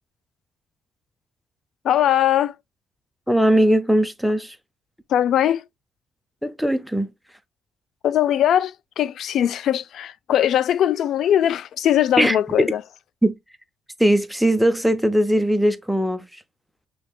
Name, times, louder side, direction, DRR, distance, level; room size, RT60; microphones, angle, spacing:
voice 1, 1.8-2.6 5.1-5.6 8.0-12.8, left 11 dB, 70° left, 0.3 m, -20 dB
voice 2, 3.3-4.6 6.4-7.1 12.2-12.4 13.2-13.3 14.0-16.4, right 1 dB, ahead, 0.5 m, -19 dB
5.5 x 2.9 x 2.2 m
cardioid pair, 90°, 0 cm